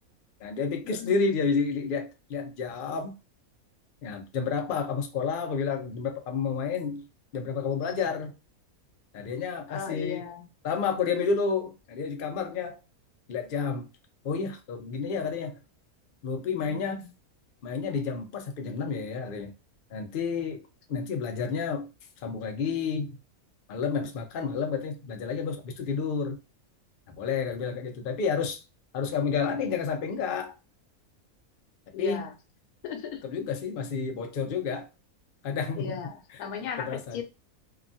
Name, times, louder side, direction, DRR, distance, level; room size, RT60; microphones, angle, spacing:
voice 1, 0.4-3.1 4.0-7.0 7.3-8.3 9.1-10.2 10.6-12.8 13.3-13.9 14.2-15.6 16.2-17.0 17.6-19.5 19.9-20.6 20.9-21.9 22.2-23.2 23.7-26.4 27.1-28.6 28.9-30.5 32.0-32.3 33.2-34.9 35.4-36.0 36.8-37.2, left 5 dB, 70° left, 0.5 m, -30 dB
voice 2, 1.0-1.3 9.7-10.5 16.7-17.1 31.9-32.3 32.8-33.2 35.8-37.2, left 7 dB, 90° left, 1.1 m, -37 dB
2.8 x 2.2 x 2.6 m
omnidirectional pair, 1.5 m